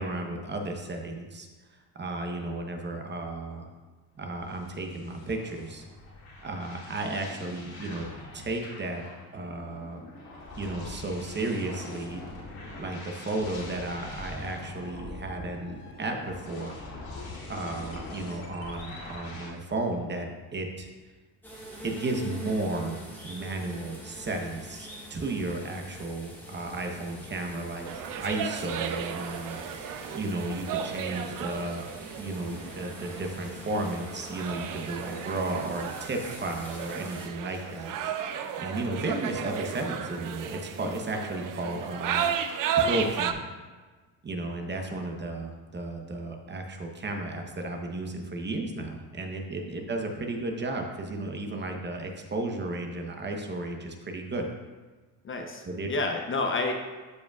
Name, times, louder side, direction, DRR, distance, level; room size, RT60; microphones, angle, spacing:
voice 1, 0.0-3.7 4.2-5.8 6.4-8.1 8.3-9.0 9.3-10.0 10.6-12.2 12.8-16.8 17.5-20.9 21.8-27.9 28.2-31.9 32.2-37.9 38.3-42.2 42.8-43.5 44.2-54.5 55.6-55.9, right 2 dB, 25° right, 3 dB, 0.9 m, -34 dB
sound 1, 4.2-19.5, left 2 dB, 60° left, 2.1 m, -43 dB
sound 2, 21.4-37.3, right 1 dB, 5° left, 1.8 m, -45 dB
sound 3, 27.9-43.3, right 7 dB, 55° right, 0.6 m, -34 dB
voice 2, 55.2-56.7, left 3 dB, 30° left, 3 dB, 0.8 m, -29 dB
12.5 x 5.0 x 2.4 m, 1.3 s
cardioid pair, 110°, 40 cm